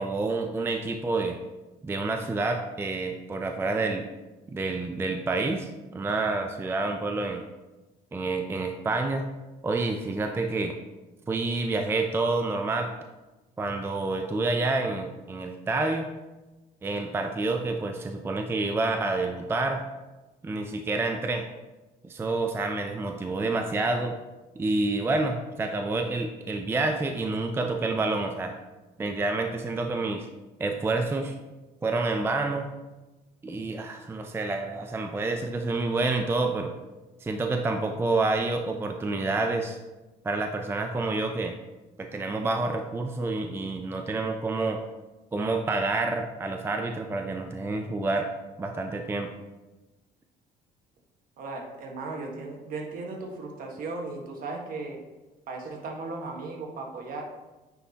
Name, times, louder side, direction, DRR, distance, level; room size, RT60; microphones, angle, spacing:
voice 1, 0.0-1.4 1.8-4.1 4.5-7.4 8.1-9.2 9.6-10.8 11.3-12.9 13.6-16.1 16.8-19.8 20.4-21.5 22.0-24.2 24.6-28.6 29.0-30.3 30.6-31.3 31.8-32.7 33.4-36.7 37.2-39.8 40.2-41.5 42.0-44.8 45.3-48.3 48.6-49.3, right 3 dB, 15° right, 5 dB, 0.4 m, -28 dB
voice 2, 51.4-55.0 55.5-57.2, right 3 dB, 55° right, 1 dB, 1.3 m, -36 dB
9.0 x 4.1 x 2.8 m, 1.1 s
cardioid pair, 110°, 17 cm